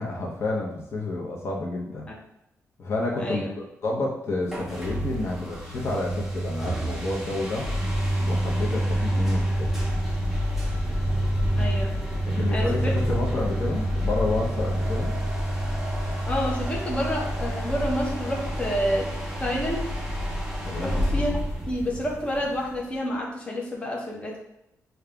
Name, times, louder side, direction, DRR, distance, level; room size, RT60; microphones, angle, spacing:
voice 1, 0.0-2.1 2.8-7.7 8.2-9.7 12.3-15.2 20.6-21.0, left 2 dB, 50° left, -1 dB, 0.8 m, -30 dB
voice 2, 3.2-3.5 11.5-11.9 12.5-12.9 16.3-19.1 19.4-19.9 20.8-21.3 21.7-24.4, equal, 20° left, -2 dB, 0.7 m, -29 dB
sound 1, 4.5-23.0, equal, 5° right, 1.0 m, -28 dB
6.6 x 2.3 x 2.3 m, 0.86 s
cardioid pair, 125°, 6 cm